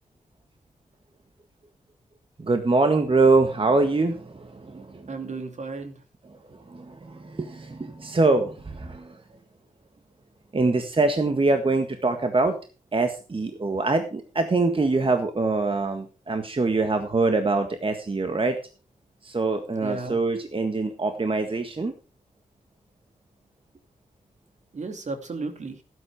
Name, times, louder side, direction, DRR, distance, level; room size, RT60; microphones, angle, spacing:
voice 1, 2.4-5.1 6.5-9.2 10.5-12.6 12.9-18.6 19.2-21.9, right 3 dB, 40° right, 7 dB, 1.7 m, -24 dB
voice 2, 5.1-6.0 19.8-20.2 24.7-25.8, right 3 dB, 60° right, 7 dB, 2.6 m, -34 dB
12.0 x 10.0 x 4.8 m, 0.35 s
supercardioid pair, 45°, 14 cm